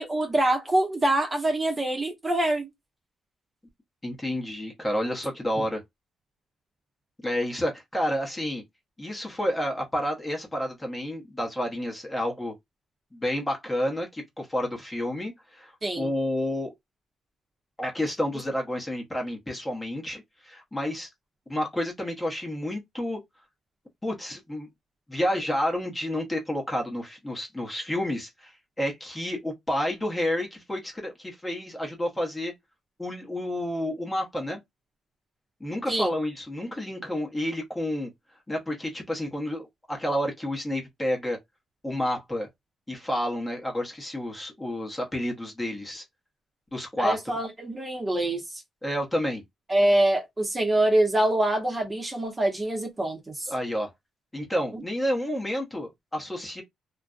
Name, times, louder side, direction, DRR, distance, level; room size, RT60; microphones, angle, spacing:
voice 1, 0.0-2.7 15.8-16.1 35.9-36.1 47.0-48.6 49.7-53.5 54.7-54.8, right 1 dB, 20° right, 0.8 m, -25 dB
voice 2, 4.0-5.8 7.2-8.6 9.0-12.5 13.1-16.7 17.8-21.1 21.5-23.2 24.0-24.7 25.1-28.5 28.8-32.5 33.0-34.6 35.6-38.1 38.5-41.4 41.8-42.5 42.9-46.0 46.7-47.2 48.8-49.4 53.5-53.9 54.3-56.6, left 1 dB, 15° left, 0.9 m, -30 dB
2.5 x 2.1 x 2.4 m
cardioid pair, 90°, 0 cm